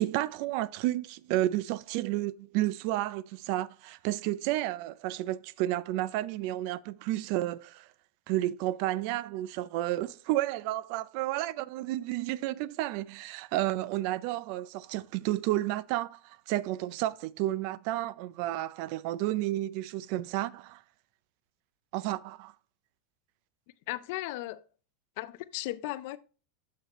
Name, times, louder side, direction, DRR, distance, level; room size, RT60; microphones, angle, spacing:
voice 1, 0.0-7.9 8.3-20.8 21.9-22.5, right 15 dB, 50° right, 0.4 m, -31 dB
voice 2, 23.9-24.6 25.2-26.2, left 17 dB, 55° left, 0.4 m, -36 dB
6.6 x 6.5 x 3.0 m
supercardioid pair, 150°, 0 cm